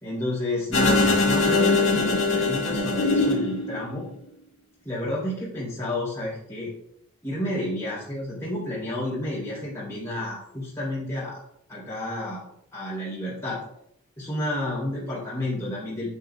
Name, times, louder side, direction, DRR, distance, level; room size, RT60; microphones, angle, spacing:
voice 1, 0.0-4.1 4.8-6.7 7.2-11.4 11.7-12.4 12.7-13.6 14.2-16.1, left 1 dB, 15° left, -8 dB, 3.1 m, -30 dB
sound 1, 0.7-4.1, left 3 dB, 60° left, 1.7 m, -22 dB
8.9 x 8.6 x 2.3 m, 0.75 s
head